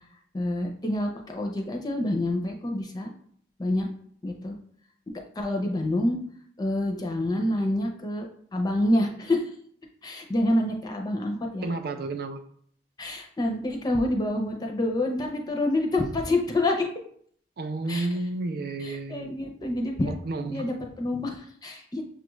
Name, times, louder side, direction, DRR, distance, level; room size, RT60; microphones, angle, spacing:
voice 1, 0.3-3.1 3.6-3.9 4.2-4.6 5.1-6.2 6.6-9.5 10.0-11.6 13.0-16.9 17.9-18.1 19.1-20.1 20.5-22.0, left 1 dB, 20° left, 1 dB, 0.5 m, -27 dB
voice 2, 11.6-12.4 17.6-19.3 20.2-20.7, right 2 dB, 60° right, 8 dB, 0.5 m, -31 dB
6.6 x 2.4 x 3.0 m, 0.62 s
head